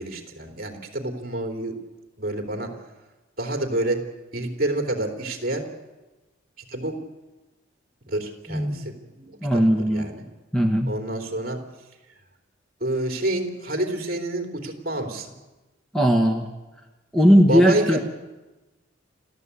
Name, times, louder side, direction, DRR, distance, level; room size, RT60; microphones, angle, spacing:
voice 1, 0.0-1.7 2.2-2.7 3.4-4.0 4.3-5.6 6.7-7.0 8.1-10.2 10.9-11.6 12.8-15.3 17.5-18.0, right 1 dB, 45° right, 4 dB, 3.3 m, -28 dB
voice 2, 8.5-8.8 9.4-10.1 10.5-10.9 15.9-16.5 17.1-18.0, equal, 5° left, 4 dB, 1.4 m, -18 dB
29.5 x 14.0 x 8.4 m, 1.2 s
head